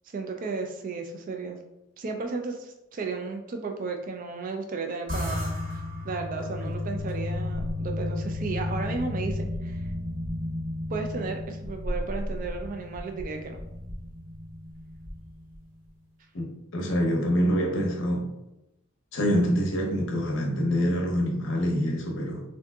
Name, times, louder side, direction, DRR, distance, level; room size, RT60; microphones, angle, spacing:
voice 1, 0.1-1.6 2.0-9.8 10.9-13.6, right 4 dB, 40° right, 5 dB, 0.3 m, -34 dB
sound 1, 5.1-15.7, left 1 dB, 60° right, 1.3 m, -33 dB
voice 2, 16.3-18.3 19.1-22.4, equal, 55° left, 1 dB, 0.6 m, -26 dB
3.7 x 2.6 x 2.3 m, 0.90 s
head